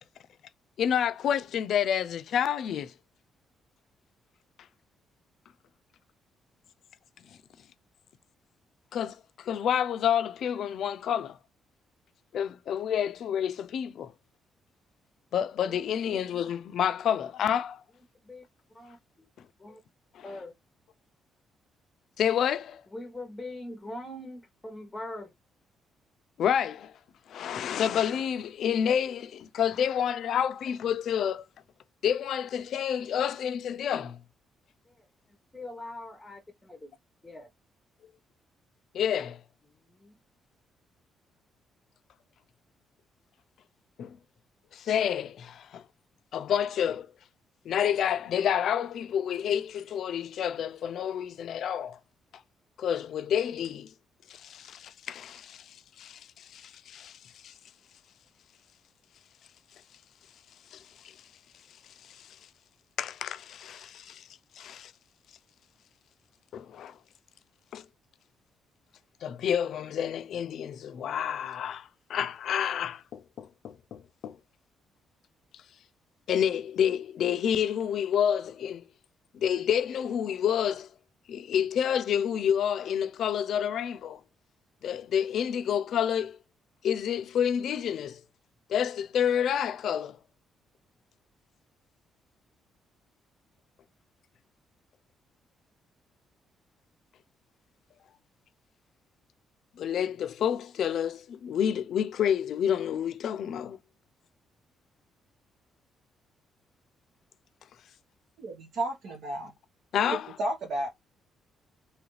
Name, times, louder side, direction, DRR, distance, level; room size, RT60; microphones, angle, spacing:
voice 1, 0.8-2.9 8.9-11.4 12.3-14.1 15.3-17.8 20.1-20.2 22.2-22.8 26.4-26.9 27.3-31.4 32.0-34.2 38.9-39.4 44.0-44.2 44.7-45.8 46.3-47.1 47.7-52.0 52.8-53.9 54.3-57.2 57.4-57.5 60.7-60.8 62.0-62.3 63.0-64.2 64.6-64.9 66.5-66.9 67.7-67.8 69.2-74.4 76.3-78.8 79.3-80.9 81.3-84.2 84.8-86.4 86.8-88.2 88.7-90.2 99.8-103.8 109.9-110.4, left 9 dB, 70° left, 0.4 m, -29 dB
voice 2, 15.7-16.2 18.2-18.4 18.7-19.3 19.6-19.8 20.2-20.5 22.9-25.3 34.9-35.0 35.5-37.0 37.2-37.5 39.8-40.1, left 1 dB, 15° left, 0.8 m, -42 dB
voice 3, 108.4-109.5 110.0-110.9, right 1 dB, 70° right, 1.1 m, -32 dB
3.0 x 2.5 x 3.1 m
cardioid pair, 90°, 0 cm